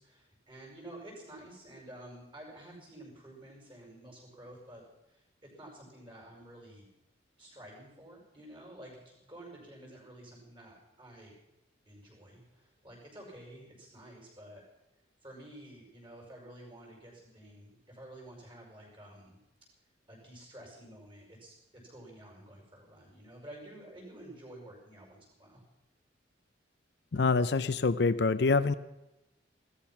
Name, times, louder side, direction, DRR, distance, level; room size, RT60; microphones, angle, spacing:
voice 1, 0.0-6.9 7.4-11.3 11.9-14.6 15.2-19.4 20.1-21.5 21.9-25.6, right 1 dB, 30° right, -1 dB, 5.6 m, -51 dB
voice 2, 27.1-28.7, left 4 dB, 60° left, 14 dB, 0.5 m, -26 dB
16.5 x 13.5 x 5.8 m, 0.93 s
head